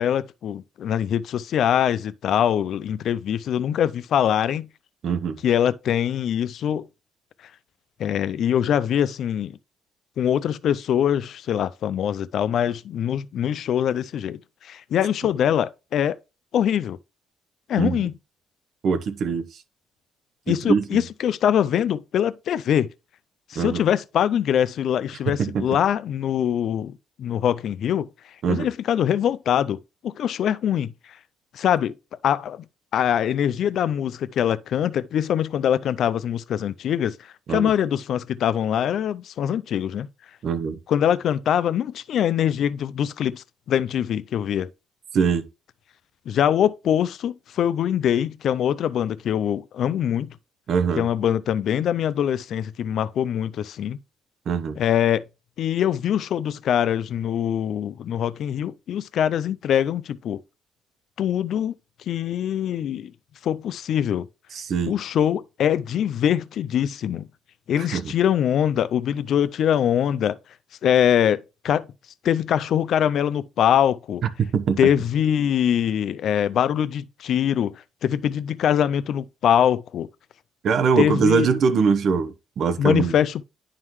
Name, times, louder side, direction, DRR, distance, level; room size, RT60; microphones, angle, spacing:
voice 1, 0.0-4.7 5.4-6.9 8.0-9.6 10.2-14.4 14.6-16.2 16.5-17.0 17.7-18.1 20.5-22.9 23.5-28.1 28.5-29.8 30.0-30.9 31.5-31.9 32.2-32.6 32.9-37.2 37.5-40.1 40.9-44.7 46.3-50.3 51.0-54.0 54.8-55.2 55.6-60.4 61.2-61.7 62.1-63.1 63.4-64.3 64.9-67.3 67.7-70.4 70.8-71.9 72.2-74.2 74.8-77.7 78.0-80.1 81.0-81.5 82.8-83.4, left 9 dB, 60° left, 0.4 m, -23 dB
voice 2, 5.0-5.4 17.8-18.0 18.8-19.5 20.5-21.0 23.6-23.8 25.3-25.7 28.4-28.7 37.5-37.7 40.4-40.8 45.1-45.4 50.7-51.1 54.5-54.8 64.5-64.9 67.8-68.1 74.4-74.8 80.6-83.1, right 6 dB, 55° right, 0.9 m, -22 dB
10.5 x 3.7 x 3.1 m
cardioid pair, 115°, 0 cm